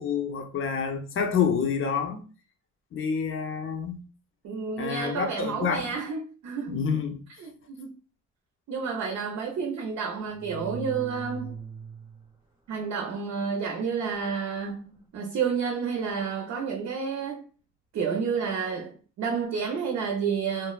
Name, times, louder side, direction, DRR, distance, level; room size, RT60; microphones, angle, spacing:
voice 1, 0.0-2.2 2.9-4.0 4.8-6.0 6.7-7.2, left 6 dB, 45° left, 0.6 m, -28 dB
voice 2, 4.4-6.8 7.4-7.9 8.7-11.6 12.7-17.4 17.9-20.7, right 6 dB, 60° right, 0.6 m, -30 dB
sound 1, 10.3-12.3 14.9-15.1, right 5 dB, 15° right, 0.8 m, -39 dB
3.2 x 2.1 x 2.3 m
cardioid pair, 90°, 30 cm